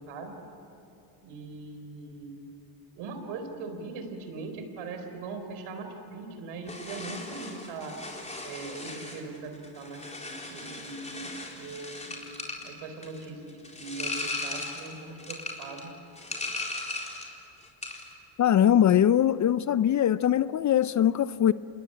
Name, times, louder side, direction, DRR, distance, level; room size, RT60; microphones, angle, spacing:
voice 1, 1.2-2.4 2.9-7.9 8.4-12.1 12.6-15.9, right 3 dB, 75° right, 4.3 m, -40 dB
sound 1, 6.7-17.4 17.6-18.1, left 2 dB, 15° left, 4.1 m, -38 dB
voice 2, 18.4-21.5, left 10 dB, 35° left, 0.6 m, -22 dB
27.0 x 20.5 x 9.0 m
supercardioid pair, 85°, 48 cm